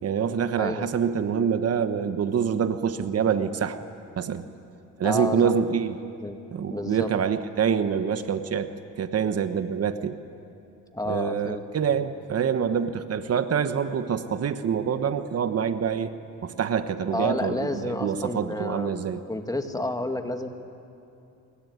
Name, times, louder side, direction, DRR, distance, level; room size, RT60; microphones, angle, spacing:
voice 1, 0.0-3.8 4.2-4.4 5.0-6.0 6.5-8.7 9.0-10.2 11.1-16.1 16.4-19.2, right 7 dB, 55° right, 10 dB, 1.2 m, -26 dB
voice 2, 0.6-0.9 5.0-5.5 6.2-6.4 6.7-7.1 10.9-11.6 17.1-19.0 19.3-20.5, left 1 dB, 10° left, 6 dB, 2.0 m, -30 dB
25.5 x 22.5 x 9.6 m, 2.7 s
cardioid pair, 90°, 30 cm